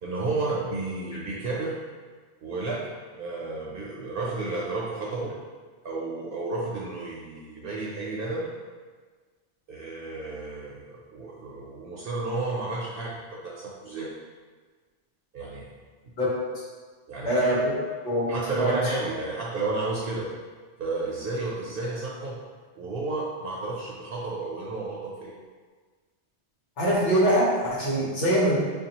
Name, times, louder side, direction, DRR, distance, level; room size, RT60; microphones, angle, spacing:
voice 1, 0.0-1.8 2.4-5.3 5.8-8.5 9.7-14.1 15.3-15.7 17.1-17.5 18.3-20.3 20.8-22.4 22.8-25.3, right 3 dB, 60° right, -4 dB, 0.7 m, -32 dB
voice 2, 17.2-17.6 18.0-18.8 26.8-28.6, equal, 90° left, -6 dB, 1.4 m, -23 dB
5.5 x 2.3 x 2.8 m, 1.5 s
omnidirectional pair, 1.2 m